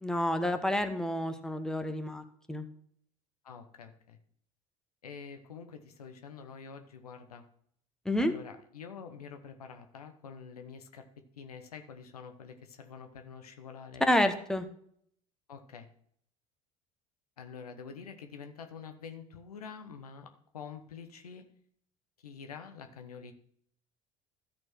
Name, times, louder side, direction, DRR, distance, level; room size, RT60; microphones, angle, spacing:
voice 1, 0.0-2.7 8.0-8.3 14.0-14.7, left 1 dB, 5° left, 8 dB, 1.2 m, -29 dB
voice 2, 3.4-4.2 5.0-7.4 8.2-11.0 11.4-14.0 15.5-15.9 17.4-21.4 22.2-23.3, left 6 dB, 85° left, 7 dB, 0.9 m, -47 dB
13.0 x 4.5 x 6.0 m, 0.65 s
hypercardioid pair, 65°, 19 cm